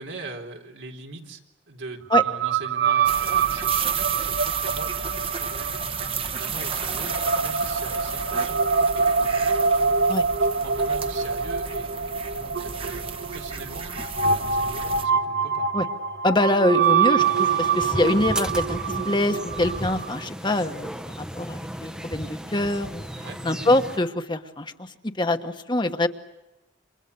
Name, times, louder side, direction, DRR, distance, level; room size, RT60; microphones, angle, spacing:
voice 1, 0.0-1.4 1.7-5.7 6.2-9.9 10.5-15.7 23.2-23.4, right 2 dB, 85° right, 2 dB, 3.9 m, -41 dB
sound 1, 2.1-20.2, right 5 dB, 65° right, 1.1 m, -25 dB
sound 2, 3.1-15.1, right 6 dB, 30° right, 1.2 m, -32 dB
voice 2, 16.2-23.0 23.4-24.9 25.2-26.1, left 1 dB, 25° left, 7 dB, 1.3 m, -24 dB
sound 3, 17.2-24.0, equal, 5° right, 0.9 m, -35 dB
29.0 x 26.5 x 7.0 m, 1.0 s
head